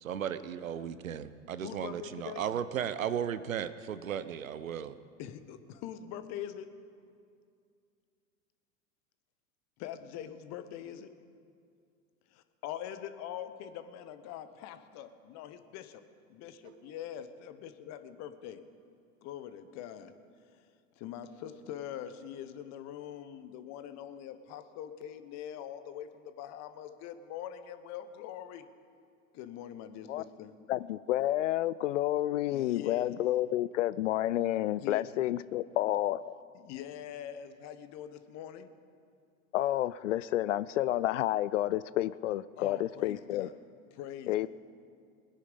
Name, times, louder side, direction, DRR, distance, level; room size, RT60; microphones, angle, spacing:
voice 1, 0.0-4.9 16.6-17.0, right 9 dB, 75° right, 14 dB, 0.8 m, -35 dB
voice 2, 1.6-2.4 5.2-6.7 9.8-11.1 12.3-16.0 16.3-18.6 19.2-20.1 21.0-28.7 29.3-30.5 32.5-33.1 34.8-35.2 36.5-38.7 42.6-43.5 43.9-44.5, left 10 dB, 40° left, 11 dB, 1.1 m, -43 dB
voice 3, 30.7-36.3 39.5-43.5 44.3-44.5, left 14 dB, 65° left, 18 dB, 0.5 m, -30 dB
21.5 x 10.0 x 5.3 m, 2.3 s
figure-of-eight pair, 85°, 40 cm